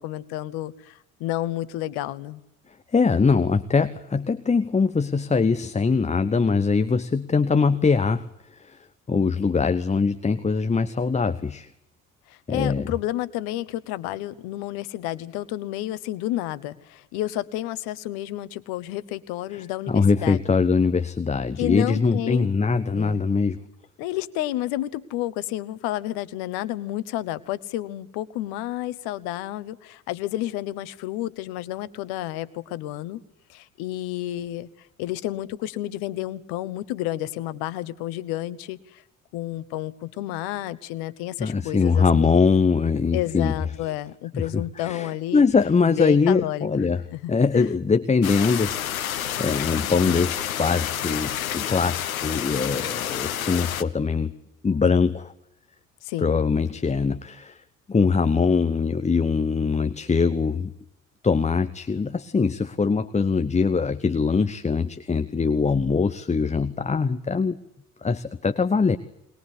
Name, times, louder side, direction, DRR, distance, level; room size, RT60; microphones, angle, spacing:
voice 1, 0.0-2.4 12.3-20.4 21.6-22.5 22.9-23.2 24.0-33.2 33.5-39.0 39.3-42.3 43.1-45.4 45.9-46.7 47.1-47.7 56.0-56.3, left 14 dB, 60° left, 16 dB, 1.3 m, -30 dB
voice 2, 2.9-8.3 8.6-8.8 9.1-11.7 12.5-12.9 19.5-23.6 41.4-43.5 44.3-47.0 47.3-48.9 49.4-54.3 54.6-55.3 56.2-57.6 57.9-60.7 61.2-67.6 68.0-69.0, left 5 dB, 15° left, 11 dB, 1.0 m, -22 dB
sound 1, 48.2-53.8, left 10 dB, 80° left, 1.0 m, -29 dB
21.5 x 21.0 x 8.4 m, 0.81 s
figure-of-eight pair, 55°, 41 cm